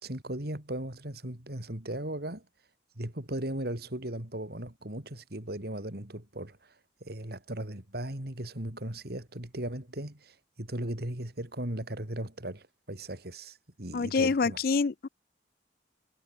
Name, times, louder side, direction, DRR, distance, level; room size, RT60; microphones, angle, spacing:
voice 1, 0.0-2.5 3.0-14.6, right 1 dB, 60° right, 3.6 m, -37 dB
voice 2, 13.9-15.1, left 4 dB, 55° left, 0.5 m, -26 dB
head